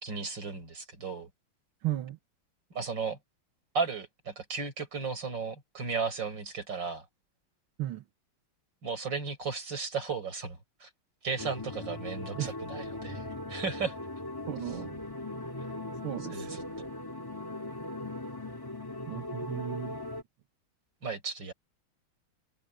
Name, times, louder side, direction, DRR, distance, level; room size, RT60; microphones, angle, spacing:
voice 1, 0.0-1.3 2.7-3.2 3.7-7.0 8.8-10.9 11.2-13.9 16.3-16.9 21.0-21.5, right 5 dB, 60° right, 5.7 m, -35 dB
voice 2, 1.8-2.2 7.8-8.0 12.3-12.6 14.5-15.0 16.0-16.6 19.1-20.0, right 13 dB, 75° right, 2.0 m, -35 dB
sound 1, 11.4-20.2, left 2 dB, 10° left, 2.3 m, -39 dB
omnidirectional pair, 2.3 m